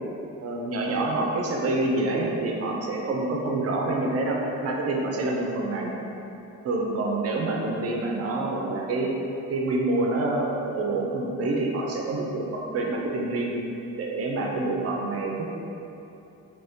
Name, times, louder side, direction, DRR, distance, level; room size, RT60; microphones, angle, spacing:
voice 1, 0.4-5.9 6.6-9.1 9.5-13.5 14.0-15.5, right 2 dB, 50° right, -1 dB, 0.4 m, -27 dB
2.9 x 2.7 x 3.4 m, 2.9 s
wide cardioid pair, 175°, 31 cm